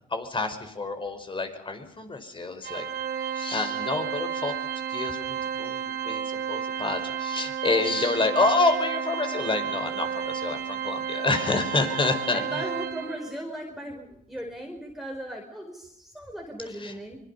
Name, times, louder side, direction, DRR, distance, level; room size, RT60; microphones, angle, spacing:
voice 1, 0.1-2.9 3.2-4.5 4.9-12.7 16.7-16.9, left 3 dB, 25° left, 7 dB, 5.1 m, -28 dB
Organ, 2.6-13.4, right 8 dB, 50° right, 2.9 m, -32 dB
voice 2, 12.3-17.2, equal, ahead, 1 dB, 4.7 m, -37 dB
24.5 x 22.5 x 5.5 m, 0.77 s
cardioid pair, 90°, 20 cm